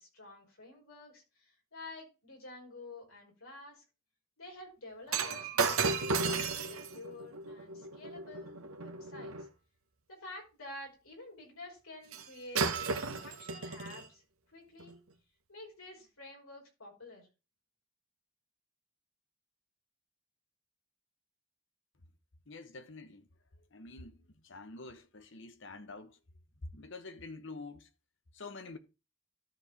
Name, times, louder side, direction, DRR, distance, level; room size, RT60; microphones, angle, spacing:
voice 1, 0.0-3.8 4.4-9.5 10.1-12.7 13.2-14.2 14.5-15.0 15.5-17.3, left 2 dB, 80° left, 5.4 m, -50 dB
Shatter, 5.1-9.5 12.1-12.3 12.6-14.1 14.8-14.9, right 4 dB, 85° right, 1.1 m, -34 dB
voice 2, 22.5-23.3 23.7-26.2 26.6-27.9 28.3-28.8, left 3 dB, 60° left, 1.1 m, -47 dB
13.0 x 4.8 x 4.1 m
head